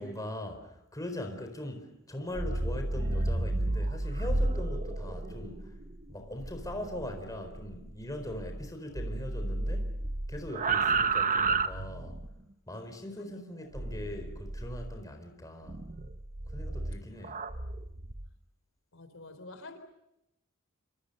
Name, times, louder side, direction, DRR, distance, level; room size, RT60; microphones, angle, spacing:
voice 1, 0.0-5.7 6.1-9.9 10.3-12.2 12.7-15.8 16.5-17.4, left 1 dB, 15° left, 4.2 m, -40 dB
sound 1, 2.2-8.7 8.9-12.3 13.7-15.0 15.7-18.3, right 3 dB, 35° right, 1.1 m, -32 dB
voice 2, 18.9-19.8, left 2 dB, 60° left, 4.0 m, -48 dB
27.5 x 26.5 x 6.7 m
head